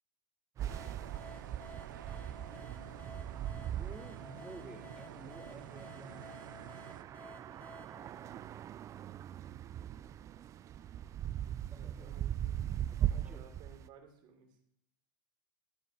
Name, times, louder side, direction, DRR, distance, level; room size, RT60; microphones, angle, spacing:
sound 1, 0.6-13.9, right 11 dB, 30° right, 0.4 m, -40 dB
sound 2, 0.6-7.0, right 11 dB, 85° right, 0.6 m, -51 dB
sound 3, 0.7-9.1, left 2 dB, 20° left, 2.5 m, -55 dB
voice 1, 2.3-2.8 11.7-12.6 12.9-14.6, right 5 dB, 45° right, 2 dB, 3.0 m, -58 dB
voice 2, 3.6-6.7 11.7-12.2 12.9-13.5, right 2 dB, 10° right, 9 dB, 1.2 m, -52 dB
13.5 x 6.9 x 5.6 m, 0.73 s
hypercardioid pair, 115°, 10 cm